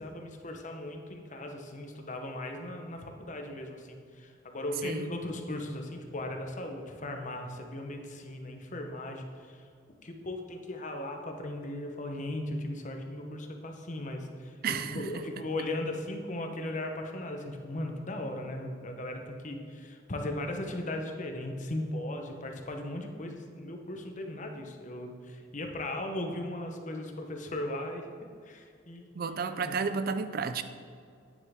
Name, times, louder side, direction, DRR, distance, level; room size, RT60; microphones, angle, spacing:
voice 1, 0.0-9.6 10.0-29.3 29.6-29.8, left 1 dB, 40° left, 4 dB, 0.9 m, -37 dB
voice 2, 14.6-15.1 29.2-30.6, right 5 dB, 55° right, 11 dB, 0.4 m, -32 dB
9.4 x 6.5 x 3.6 m, 2.3 s
head